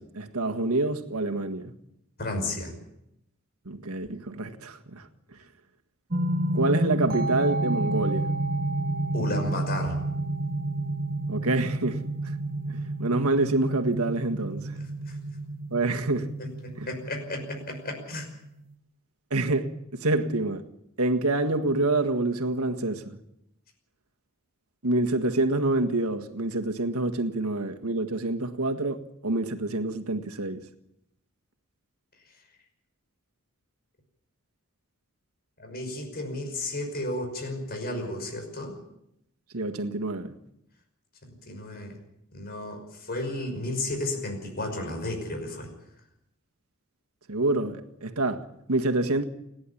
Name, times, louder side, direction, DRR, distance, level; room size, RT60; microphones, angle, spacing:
voice 1, 0.0-1.7 3.6-5.0 6.5-8.3 11.3-12.0 12.7-14.7 15.7-16.3 16.8-16.9 19.3-20.6 21.0-23.2 24.8-29.0 29.2-30.6 39.5-40.3 47.3-49.2, right 2 dB, 90° right, 1.7 m, -27 dB
voice 2, 2.2-2.7 9.1-10.0 14.8-15.2 16.4-18.3 35.6-38.8 41.5-41.9 42.3-45.7, left 2 dB, 45° left, 5.7 m, -33 dB
sound 1, 6.1-18.7, right 2 dB, 45° right, 1.3 m, -30 dB
29.5 x 11.0 x 8.6 m
head